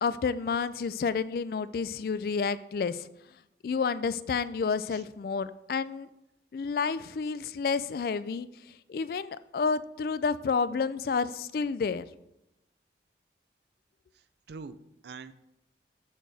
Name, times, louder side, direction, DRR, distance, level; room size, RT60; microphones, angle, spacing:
voice 1, 0.0-3.1 3.6-6.1 6.5-8.5 8.9-12.0, left 5 dB, 55° left, 15 dB, 0.3 m, -30 dB
voice 2, 14.1-15.3, right 4 dB, 70° right, 13 dB, 0.4 m, -45 dB
12.5 x 4.3 x 3.4 m, 0.87 s
head